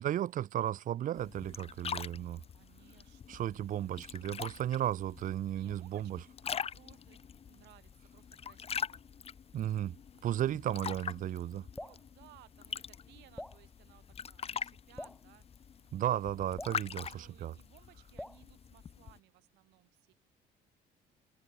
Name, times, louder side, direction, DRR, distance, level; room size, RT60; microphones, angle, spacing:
voice 1, 0.0-2.4 3.3-6.2 9.5-10.0 10.2-11.7 15.9-17.5, right 11 dB, 50° right, 0.7 m, -34 dB
sound 1, 1.2-19.2, left 7 dB, 35° left, 1.1 m, -44 dB
voice 2, 2.5-3.5 5.5-6.3 6.7-9.1 11.0-11.1 11.7-16.3 17.1-20.1, right 21 dB, 90° right, 2.1 m, -62 dB
Drip, 11.7-12.0 13.4-13.6 15.0-15.2 16.6-16.8 18.2-18.4, left 1 dB, 5° left, 0.7 m, -44 dB
cardioid pair, 110°, 17 cm